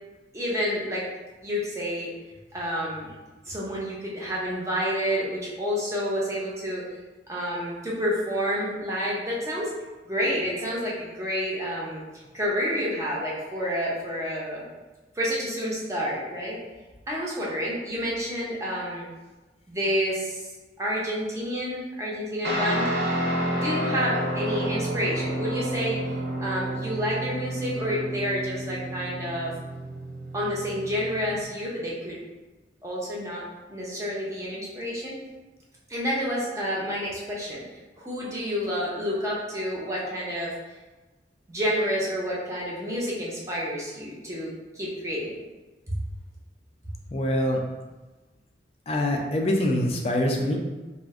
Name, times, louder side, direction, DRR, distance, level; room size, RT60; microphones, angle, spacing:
voice 1, 0.3-1.1 1.4-2.1 2.5-3.1 3.4-7.0 7.3-9.7 10.1-12.0 12.3-14.6 15.1-16.6 17.1-19.1 19.7-22.9 23.5-26.1 26.4-29.5 30.3-32.2 32.8-33.4 33.7-35.1 35.9-37.6 38.0-40.5 41.5-45.4 45.9-46.0, equal, 15° right, -6 dB, 0.6 m, -29 dB
Guitar, 22.4-31.4, right 1 dB, 65° right, 0.7 m, -30 dB
voice 2, 47.1-47.6 48.9-50.6, left 1 dB, 35° left, 1 dB, 0.3 m, -24 dB
2.5 x 2.1 x 3.5 m, 1.2 s
head